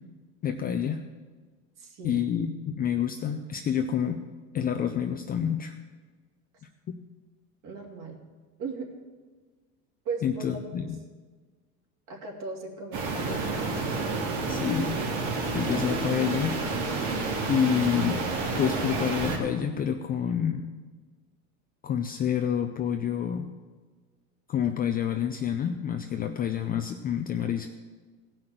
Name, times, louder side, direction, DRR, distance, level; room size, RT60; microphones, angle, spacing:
voice 1, 0.4-1.0 2.0-4.2 4.5-5.7 10.2-11.0 14.5-15.0 15.5-16.6 17.5-18.2 18.6-20.7 21.8-23.5 24.5-27.7, left 8 dB, 20° left, 5 dB, 0.4 m, -28 dB
voice 2, 1.8-2.2 7.6-8.2 8.6-8.9 10.0-10.9 12.1-13.6, right 4 dB, 45° right, 1 dB, 2.7 m, -37 dB
sound 1, 12.9-19.4, right 3 dB, 85° right, 3.1 m, -29 dB
16.5 x 6.0 x 7.7 m, 1.4 s
supercardioid pair, 125°, 45 cm